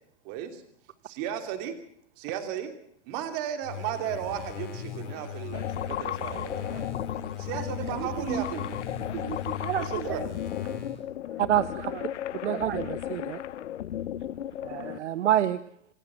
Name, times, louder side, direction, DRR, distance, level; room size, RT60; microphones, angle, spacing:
voice 1, 0.2-0.6 1.0-1.7 2.2-2.7 3.1-6.9 7.4-8.4 10.0-10.2, right 9 dB, 35° right, 6 dB, 3.0 m, -34 dB
sound 1, 3.6-11.0, left 7 dB, 50° left, 7.4 m, -39 dB
sound 2, 5.5-15.0, left 11 dB, 85° left, 0.9 m, -35 dB
voice 2, 7.4-10.8 11.3-12.1 12.4-12.9 13.2-13.6, right 9 dB, 65° right, 6 dB, 4.1 m, -37 dB
voice 3, 11.4-11.9 12.4-13.4 14.6-15.6, right 11 dB, 80° right, 15 dB, 1.0 m, -27 dB
27.0 x 13.5 x 7.5 m, 0.68 s
hypercardioid pair, 160°, 35 cm